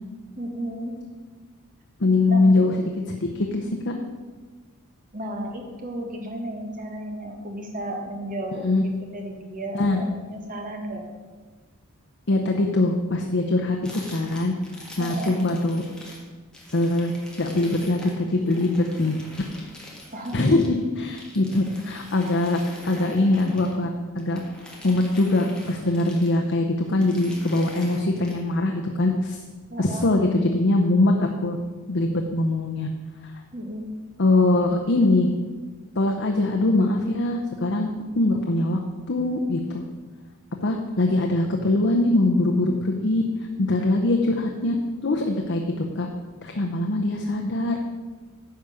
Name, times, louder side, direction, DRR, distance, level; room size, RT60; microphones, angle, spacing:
voice 1, 0.4-1.0 2.3-2.7 5.1-11.0 15.0-15.3 20.1-20.4 29.7-30.1 33.5-33.9, right 1 dB, 40° right, 2 dB, 1.6 m, -34 dB
voice 2, 2.0-3.9 8.6-8.8 9.7-10.0 12.3-13.8 14.1-14.5 15.0-15.8 16.7-17.1 17.4-19.1 20.3-22.6 22.9-23.9 24.1-24.4 24.8-29.4 29.8-31.6 31.9-32.9 34.2-35.3 36.0-37.9 38.1-38.8 39.1-39.8 40.6-43.2 43.6-44.7 45.0-46.1 46.4-47.8, left 2 dB, 55° left, 2 dB, 0.8 m, -22 dB
sound 1, 13.8-16.2 16.5-23.8 24.2-26.5 26.9-28.4, left 1 dB, 5° left, 1.7 m, -44 dB
10.0 x 5.0 x 7.0 m, 1.4 s
head